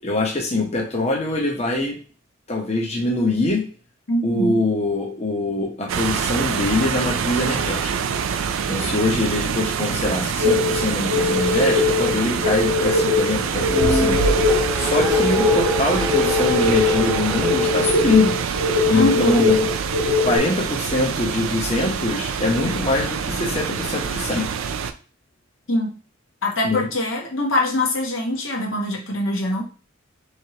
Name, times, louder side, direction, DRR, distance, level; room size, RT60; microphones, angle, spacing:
voice 1, 0.0-2.0 2.5-3.6 4.2-8.1 8.7-18.3 18.9-19.7 20.2-24.5 26.6-26.8, left 2 dB, 35° left, -1 dB, 0.9 m, -23 dB
voice 2, 4.1-4.6 18.9-19.4 25.7-25.9 26.4-29.6, left 1 dB, 75° left, 0 dB, 1.0 m, -23 dB
sound 1, 5.9-24.9, right 6 dB, 90° right, 0.4 m, -25 dB
sound 2, 10.4-20.4, left 3 dB, 55° right, 1.2 m, -21 dB
sound 3, 13.5-17.9, right 1 dB, 10° right, 0.4 m, -28 dB
4.2 x 3.2 x 2.9 m, 0.37 s
head